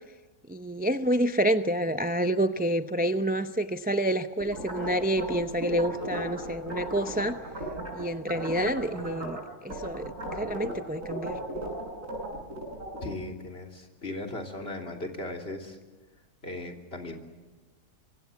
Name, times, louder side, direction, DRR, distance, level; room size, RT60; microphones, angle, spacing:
voice 1, 0.5-7.4 7.9-11.4, right 1 dB, 10° right, 9 dB, 0.4 m, -28 dB
sound 1, 4.4-8.0 8.3-9.4 9.7-13.1, right 1 dB, 60° right, 7.6 m, -35 dB
voice 2, 13.0-15.8 16.4-17.2, left 2 dB, 40° left, 3 dB, 3.4 m, -37 dB
25.5 x 23.5 x 7.2 m, 1.3 s
omnidirectional pair, 1.6 m